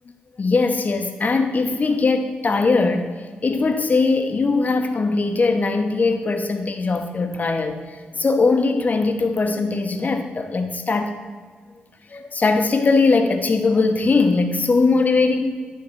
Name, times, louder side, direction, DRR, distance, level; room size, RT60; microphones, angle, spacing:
voice 1, 0.4-11.2 12.1-15.7, left 3 dB, 45° left, 6 dB, 0.9 m, -20 dB
9.6 x 3.8 x 6.8 m, 1.5 s
cardioid pair, 55°, 4 cm